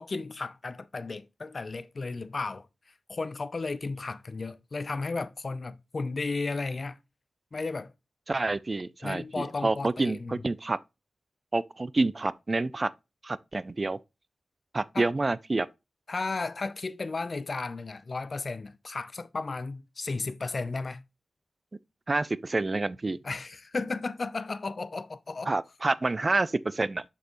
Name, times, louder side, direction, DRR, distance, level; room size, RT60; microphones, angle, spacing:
voice 1, 0.0-2.7 3.1-7.0 7.5-7.9 9.0-10.4 14.9-15.1 16.1-21.0 23.2-25.5, left 3 dB, 50° left, 0.5 m, -34 dB
voice 2, 8.3-10.8 11.5-12.9 13.2-14.0 14.7-15.7 22.1-23.2 25.5-27.0, right 2 dB, 35° right, 0.3 m, -28 dB
6.3 x 5.4 x 3.0 m
wide cardioid pair, 70°, 0 cm